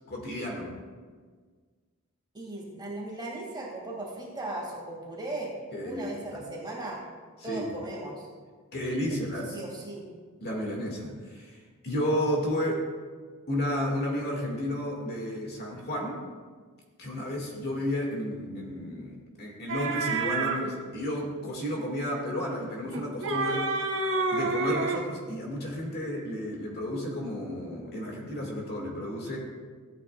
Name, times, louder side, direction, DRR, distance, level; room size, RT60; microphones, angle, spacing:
voice 1, 0.1-0.7 5.7-6.4 7.4-7.6 8.7-9.6 10.4-11.6 11.8-12.9 13.5-16.2 17.0-23.7 24.3-29.4, equal, 45° left, -1 dB, 2.1 m, -32 dB
voice 2, 2.3-5.6 5.8-7.0 7.4-8.3 9.1-9.2 9.5-10.0, right 2 dB, 20° right, -3 dB, 2.2 m, -37 dB
sound 1, 19.7-20.6 22.9-25.1, right 3 dB, 60° right, 1.1 m, -28 dB
15.0 x 8.8 x 2.4 m, 1.5 s
head